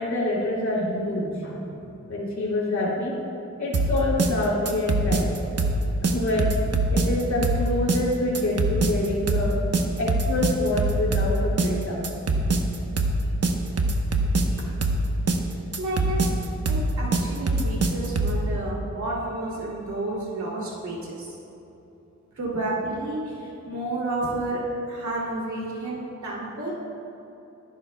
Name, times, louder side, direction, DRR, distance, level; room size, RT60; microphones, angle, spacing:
voice 1, 0.0-1.7 2.1-3.1 3.6-5.4 6.0-6.5 6.9-9.6 10.0-12.5, left 1 dB, 65° left, -6 dB, 3.0 m, -26 dB
sound 1, 3.7-18.4, right 2 dB, 55° right, 1.0 m, -23 dB
voice 2, 15.8-16.3 16.7-21.3 22.4-24.6 24.9-26.7, right 2 dB, 70° right, -5 dB, 2.7 m, -31 dB
23.0 x 11.5 x 2.3 m, 3.0 s
wide cardioid pair, 145°, 30 cm